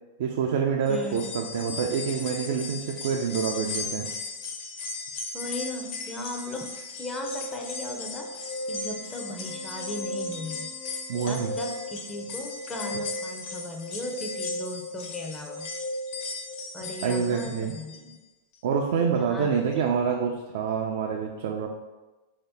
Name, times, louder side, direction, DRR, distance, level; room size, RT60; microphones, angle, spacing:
voice 1, 0.2-4.1 11.1-11.5 17.0-17.7 18.6-21.7, right 6 dB, 70° right, 1 dB, 0.4 m, -27 dB
sound 1, 0.8-18.1 18.5-18.6 19.7-19.8, left 4 dB, 55° left, 0.8 m, -38 dB
voice 2, 0.9-1.3 5.3-8.3 8.7-10.7 11.2-15.7 16.7-18.2 19.1-19.8, left 1 dB, 15° left, 2 dB, 0.5 m, -37 dB
sound 2, 7.2-17.3, equal, 80° left, 1.0 m, -37 dB
3.8 x 2.8 x 3.4 m, 1.1 s
hypercardioid pair, 115°, 0 cm